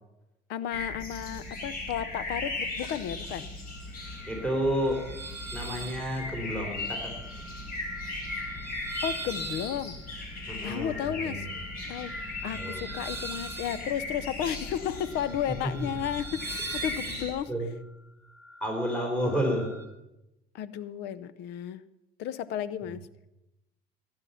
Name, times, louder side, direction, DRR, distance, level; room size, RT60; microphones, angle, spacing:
voice 1, 0.5-3.5 9.0-10.0 10.6-11.5 11.9-12.1 12.4-17.5 20.5-21.8 22.2-23.1, left 10 dB, 85° left, 17 dB, 0.6 m, -33 dB
sound 1, 0.7-17.3, left 2 dB, 60° left, 4.3 m, -38 dB
sound 2, 3.7-19.8, right 2 dB, 15° right, 2.7 m, -43 dB
voice 2, 4.3-5.0 5.5-7.1 10.5-11.6 12.5-12.9 15.5-16.0 17.5-17.7 18.6-19.7 22.8-22.9, equal, 5° left, 0 dB, 4.0 m, -31 dB
17.0 x 9.7 x 5.6 m, 0.94 s
cardioid pair, 110°, 17 cm